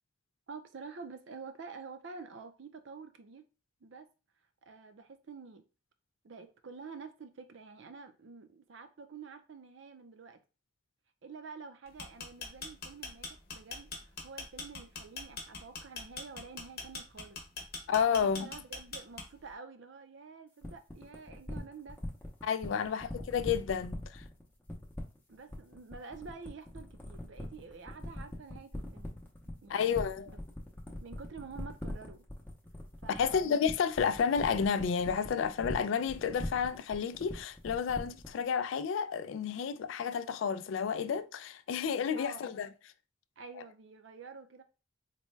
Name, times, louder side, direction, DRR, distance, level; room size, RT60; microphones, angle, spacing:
voice 1, 0.5-3.4 3.8-4.1 4.6-5.6 6.2-10.4 11.2-17.4 18.2-22.0 22.7-22.9 25.3-29.2 29.5-30.4 31.0-32.2 33.0-33.4 42.1-42.6 43.4-44.6, right 4 dB, 65° right, 0.5 m, -48 dB
sound 1, 11.9-19.5, left 3 dB, 50° left, 0.8 m, -42 dB
voice 2, 17.9-18.5 22.4-24.2 29.7-30.3 33.1-42.7, left 7 dB, 70° left, 0.3 m, -31 dB
sound 2, 20.6-38.4, left 1 dB, 10° left, 0.6 m, -41 dB
4.1 x 2.2 x 3.1 m
head